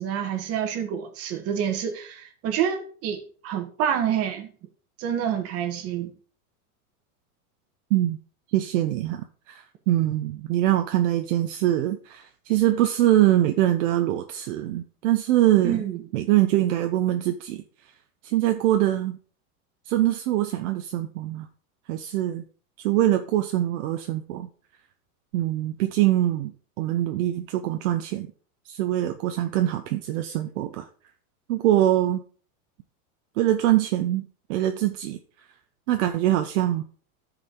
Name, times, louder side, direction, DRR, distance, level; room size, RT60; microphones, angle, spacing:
voice 1, 0.0-4.5 5.0-6.1 15.6-16.0, right 9 dB, 35° right, 1.5 m, -28 dB
voice 2, 8.5-15.8 16.1-17.6 18.2-19.2 19.9-21.5 21.9-22.4 22.8-24.5 25.3-26.5 26.8-28.3 28.7-30.9 31.5-32.2 33.4-35.2 35.9-36.8, right 13 dB, 55° right, 0.8 m, -23 dB
13.0 x 5.0 x 3.8 m
supercardioid pair, 155°, 44 cm